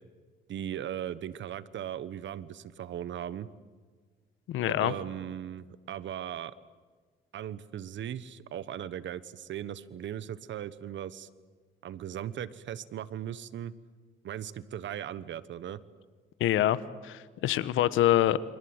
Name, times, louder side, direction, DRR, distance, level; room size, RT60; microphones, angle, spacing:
voice 1, 0.5-3.5 4.7-6.5 7.3-11.3 11.8-13.7 14.2-15.8, right 10 dB, 70° right, 16 dB, 1.3 m, -38 dB
voice 2, 4.5-4.9 16.4-16.8 17.0-18.4, left 13 dB, 85° left, 15 dB, 1.3 m, -25 dB
29.0 x 25.5 x 8.1 m, 1.5 s
cardioid pair, 90°, 20 cm